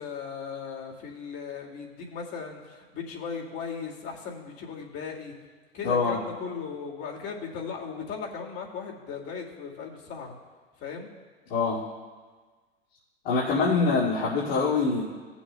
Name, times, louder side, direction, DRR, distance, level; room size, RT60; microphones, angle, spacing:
voice 1, 0.0-5.3 5.7-10.4 10.8-11.1, left 6 dB, 50° left, 0 dB, 2.2 m, -37 dB
voice 2, 5.8-6.2 11.5-11.8 13.2-15.0, left 4 dB, 65° left, -7 dB, 2.3 m, -24 dB
18.5 x 7.2 x 2.2 m, 1.4 s
hypercardioid pair, 75°, 31 cm